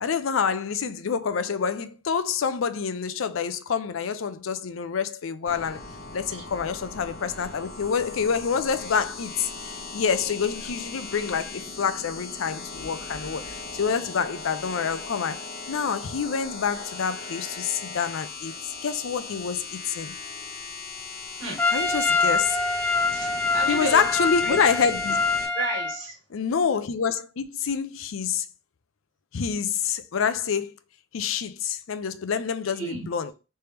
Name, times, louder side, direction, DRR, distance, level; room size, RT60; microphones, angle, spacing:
voice 1, 0.0-5.8 6.1-20.1 21.7-22.6 23.7-25.2 26.3-28.5 29.3-30.7 31.1-33.3, left 6 dB, 80° left, 0.5 m, -27 dB
sound 1, 5.5-25.5, left 3 dB, 55° left, 0.9 m, -38 dB
Trumpet, 21.6-26.0, left 3 dB, 10° left, 0.5 m, -25 dB
voice 2, 23.1-24.1 24.4-24.6 25.6-26.1 32.7-33.0, right 2 dB, 75° right, 1.8 m, -31 dB
3.3 x 3.3 x 2.9 m
head